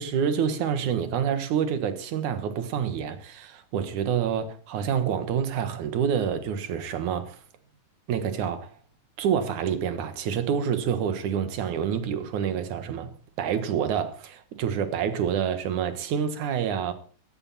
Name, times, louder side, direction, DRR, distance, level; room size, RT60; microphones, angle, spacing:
voice 1, 0.0-7.4 8.1-8.7 9.2-16.9, right 8 dB, 85° right, 3.0 m, -27 dB
16.5 x 13.5 x 4.2 m
omnidirectional pair, 3.4 m